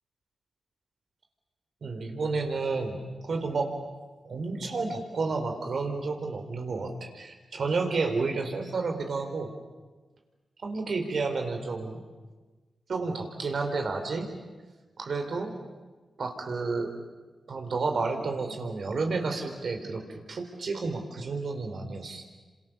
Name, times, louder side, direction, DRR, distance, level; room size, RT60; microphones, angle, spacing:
voice 1, 1.8-3.7 4.2-9.5 10.6-12.0 12.9-14.3 15.0-15.5 16.2-16.9 17.5-22.2, right 3 dB, 70° right, 4 dB, 4.4 m, -31 dB
28.0 x 26.5 x 7.0 m, 1.3 s
supercardioid pair, 40°, 0 cm